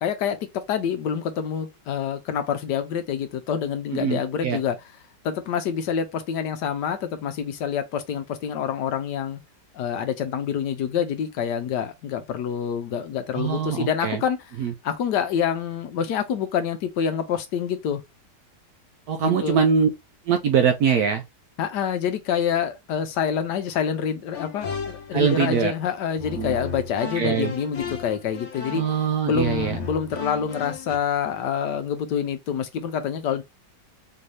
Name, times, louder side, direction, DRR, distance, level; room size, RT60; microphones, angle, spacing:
voice 1, 0.0-4.8 5.2-9.4 9.7-14.4 14.8-18.0 19.2-19.6 21.6-28.8 29.2-33.4, left 8 dB, 70° left, 1.2 m, -27 dB
voice 2, 3.9-4.6 13.3-14.2 14.6-14.7 19.1-19.9 20.3-21.2 25.1-25.7 26.4-26.6 27.1-27.5 28.7-29.8, right 6 dB, 70° right, 0.9 m, -22 dB
sound 1, 24.3-25.8 26.2-31.0, left 4 dB, 50° left, 1.1 m, -35 dB
4.5 x 2.7 x 3.2 m
omnidirectional pair, 2.0 m